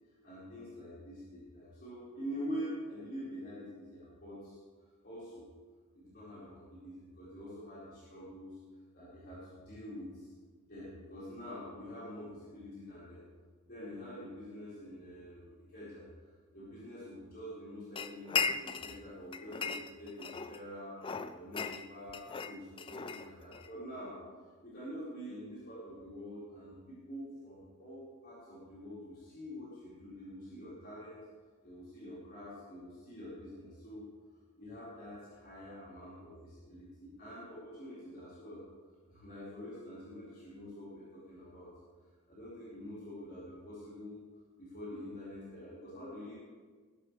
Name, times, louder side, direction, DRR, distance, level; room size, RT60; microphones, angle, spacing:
voice 1, 0.2-4.6 5.0-5.4 5.9-8.6 8.9-10.3 10.7-13.2 13.7-21.0 21.3-24.1 24.6-31.2 31.6-34.1 34.6-38.6 39.1-41.7 42.3-44.2 44.6-46.3, equal, 45° left, -11 dB, 4.8 m, -46 dB
sound 1, 18.0-19.0 19.3-20.6 21.0-23.7, left 5 dB, 25° left, 0.4 m, -37 dB
19.0 x 12.5 x 3.4 m, 1.5 s
head